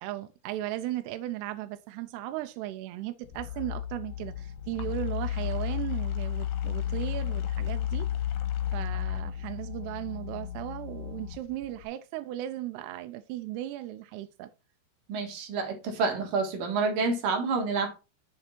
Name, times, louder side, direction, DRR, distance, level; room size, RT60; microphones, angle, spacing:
voice 1, 0.0-8.1 8.7-14.5, right 14 dB, 80° right, 2.6 m, -36 dB
sound 1, 3.2-11.9, left 11 dB, 80° left, 3.1 m, -33 dB
voice 2, 15.1-18.0, right 4 dB, 65° right, 2.8 m, -28 dB
6.7 x 6.7 x 4.3 m
omnidirectional pair, 4.8 m